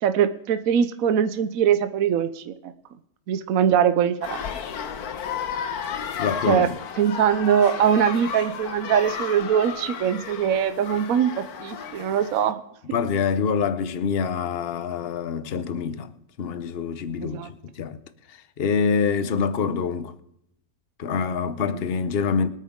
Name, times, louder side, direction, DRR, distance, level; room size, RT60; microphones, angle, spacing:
voice 1, 0.0-2.7 3.3-4.4 6.5-6.7 7.0-12.6 17.2-17.5, right 8 dB, 70° right, 1.1 m, -22 dB
sound 1, 4.2-12.5, left 7 dB, 85° left, 1.5 m, -33 dB
voice 2, 6.2-6.7 12.9-16.1 16.4-18.0 18.3-20.1 21.0-22.5, left 6 dB, 50° left, 1.0 m, -26 dB
24.5 x 9.2 x 3.7 m
omnidirectional pair, 1.6 m